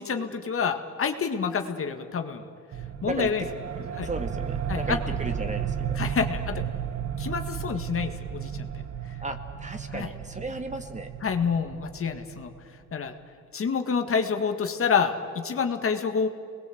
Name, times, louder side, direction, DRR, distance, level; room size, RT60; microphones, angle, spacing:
voice 1, 0.0-2.5 3.0-3.5 3.9-4.1 4.7-5.1 5.9-6.6 7.2-8.7 9.1-9.2 9.9-10.1 11.2-12.5 12.9-13.1 13.5-16.3, left 6 dB, 45° left, 6 dB, 1.9 m, -28 dB
sound 1, 2.7-12.9, right 8 dB, 60° right, 1.1 m, -33 dB
voice 2, 4.0-6.0 9.2-11.1, right 2 dB, 25° right, 6 dB, 2.2 m, -34 dB
29.0 x 21.0 x 7.9 m, 2.4 s
cardioid pair, 90°, 30 cm